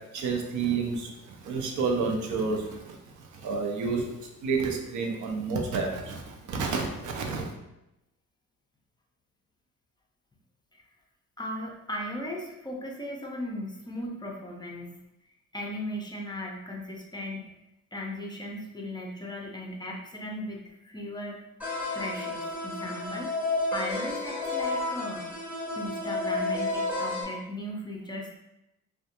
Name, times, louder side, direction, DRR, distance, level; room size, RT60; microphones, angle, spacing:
voice 1, 0.1-1.1 1.5-2.6 3.4-4.0 4.4-6.2 6.5-7.4, right 4 dB, 75° right, 2 dB, 0.5 m, -29 dB
voice 2, 11.4-15.0 15.5-17.5 17.9-21.4 21.9-23.3 23.7-25.3 25.7-28.4, left 1 dB, 15° left, -1 dB, 0.4 m, -37 dB
sound 1, 21.6-27.2, left 2 dB, 5° right, 0.8 m, -31 dB
2.4 x 2.2 x 2.8 m, 0.90 s
cardioid pair, 90°, 30 cm